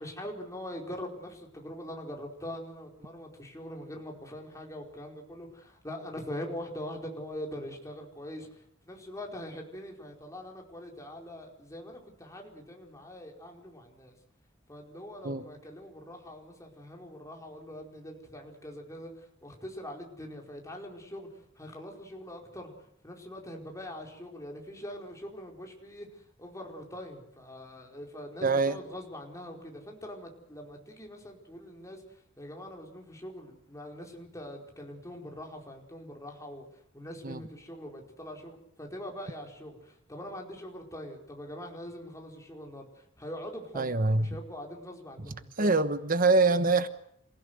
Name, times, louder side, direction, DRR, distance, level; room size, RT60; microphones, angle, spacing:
voice 1, 0.0-14.2 14.7-22.7 23.0-36.7 36.9-45.8, equal, 15° left, 1 dB, 4.7 m, -43 dB
voice 2, 28.4-28.8 37.2-37.4 43.7-44.3 45.6-46.9, right 3 dB, 45° right, 11 dB, 1.2 m, -24 dB
27.5 x 16.5 x 8.0 m, 0.72 s
head